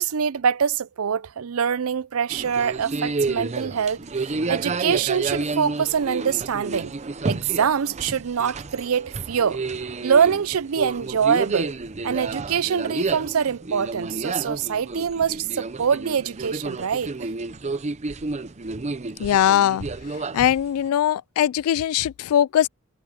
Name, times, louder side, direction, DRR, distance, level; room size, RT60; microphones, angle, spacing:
voice 1, 0.0-6.9 7.2-9.6 10.0-11.8 12.0-17.3, right 7 dB, 80° right, 0.5 m, -24 dB
sound 1, 2.3-20.9, right 3 dB, 35° right, 0.7 m, -30 dB
voice 2, 19.2-19.9 20.3-22.7, left 10 dB, 85° left, 0.3 m, -20 dB
head